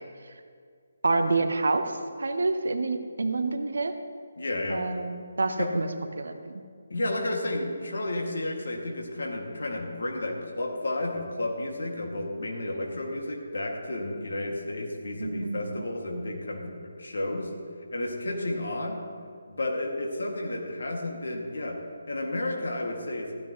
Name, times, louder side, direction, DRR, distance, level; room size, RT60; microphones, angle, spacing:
voice 1, 1.0-1.8 2.2-3.9 4.7-5.9 6.2-6.6 15.2-15.8, right 3 dB, 65° right, 8 dB, 0.9 m, -27 dB
voice 2, 4.4-4.9 5.6-5.7 6.9-17.5 17.9-19.0 19.5-23.4, left 1 dB, 65° left, 0 dB, 2.2 m, -32 dB
15.0 x 12.5 x 3.1 m, 2.1 s
figure-of-eight pair, 145°, 0 cm